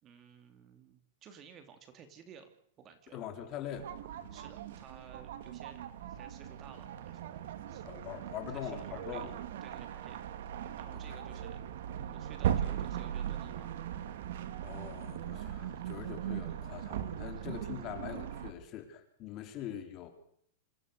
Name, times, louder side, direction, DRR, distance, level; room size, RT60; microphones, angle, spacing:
voice 1, 0.0-2.5 2.8-3.3 4.3-7.4 7.7-7.8 8.5-9.3 9.6-10.2 10.8-11.6 12.0-13.7, right 7 dB, 30° right, 8 dB, 3.0 m, -55 dB
voice 2, 3.1-4.3 7.8-9.4 10.9-11.2 14.6-20.1, left 10 dB, 35° left, 6 dB, 4.3 m, -43 dB
sound 1, 3.7-18.5, right 10 dB, 70° right, 2.4 m, -39 dB
27.0 x 15.0 x 6.8 m, 0.66 s
supercardioid pair, 145°, 0 cm